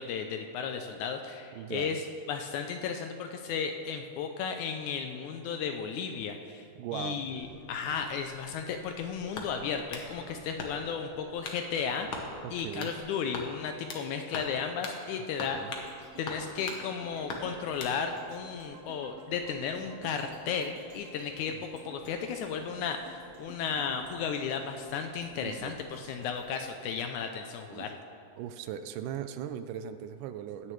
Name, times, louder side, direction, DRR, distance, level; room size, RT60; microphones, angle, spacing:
voice 1, 0.0-2.0 2.3-6.7 6.9-15.6 16.2-21.6 21.9-28.0, left 6 dB, 80° left, 5 dB, 1.8 m, -34 dB
voice 2, 1.5-1.9 6.8-7.2 12.4-12.9 15.4-15.7 21.5-21.6 25.4-25.7 26.0-26.2 27.7-27.9 28.4-30.7, right 10 dB, 80° right, 10 dB, 2.0 m, -39 dB
sound 1, 7.3-13.0, right 1 dB, 30° right, 1.7 m, -54 dB
sound 2, 9.3-10.1 10.6-11.0 11.4-11.6 12.1-12.3 12.8-13.0 13.3-14.1 14.3-14.6 14.8-15.0 15.4-15.9 16.3-16.8 17.3-18.0, left 4 dB, 60° left, 1.4 m, -39 dB
sound 3, 15.4-27.6 28.0-28.1, right 2 dB, 60° right, 2.2 m, -52 dB
17.5 x 9.8 x 3.2 m, 2.7 s
omnidirectional pair, 3.8 m